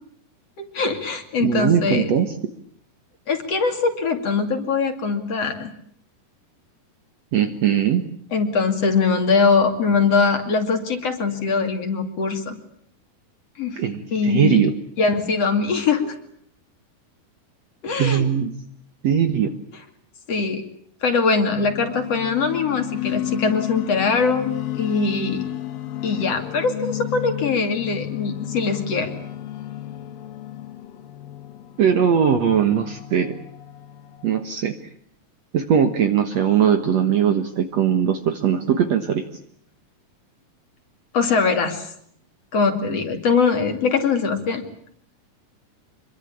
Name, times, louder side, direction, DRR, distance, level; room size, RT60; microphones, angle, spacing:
voice 1, 0.6-2.1 3.3-5.7 8.3-12.6 13.6-13.8 14.1-14.6 15.0-16.1 17.8-18.2 20.3-20.6 21.0-24.5 24.7-25.5 26.0-29.1 41.1-41.9 42.5-44.6, left 4 dB, 45° left, 6 dB, 3.4 m, -22 dB
voice 2, 1.4-2.3 7.3-8.0 13.8-14.7 18.0-18.6 19.0-19.5 31.8-33.4 34.2-34.8 35.5-39.3, right 8 dB, 60° right, 7 dB, 2.2 m, -20 dB
sound 1, 21.5-34.4, left 13 dB, 80° left, 3.2 m, -32 dB
25.5 x 23.0 x 8.6 m, 0.67 s
omnidirectional pair, 4.0 m